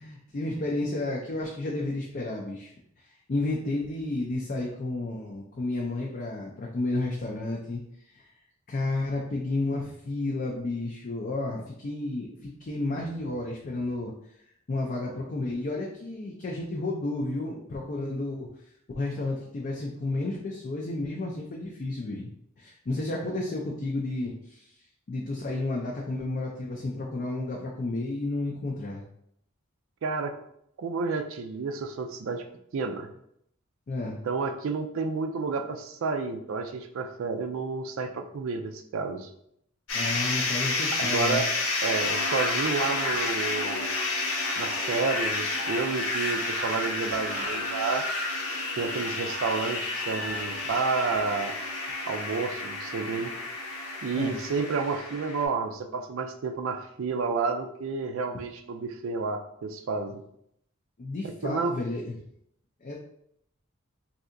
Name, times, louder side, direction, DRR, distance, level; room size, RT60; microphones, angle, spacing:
voice 1, 0.0-2.7 3.3-7.8 8.1-8.3 8.7-14.1 14.7-18.5 19.0-22.3 22.6-24.7 25.1-29.0 33.9-34.2 39.9-41.4 54.2-54.4 61.0-62.1 62.8-63.0, left 2 dB, 40° left, -2 dB, 0.4 m, -31 dB
voice 2, 30.0-30.3 30.8-32.4 32.7-33.1 34.0-39.3 41.0-41.5 41.8-43.8 44.6-48.1 48.8-51.5 52.1-53.3 54.0-60.2 61.2-61.7, right 4 dB, 65° right, 6 dB, 0.4 m, -30 dB
sound 1, 39.9-55.4, left 2 dB, 75° left, 0.8 m, -30 dB
3.3 x 2.7 x 2.5 m, 0.73 s
head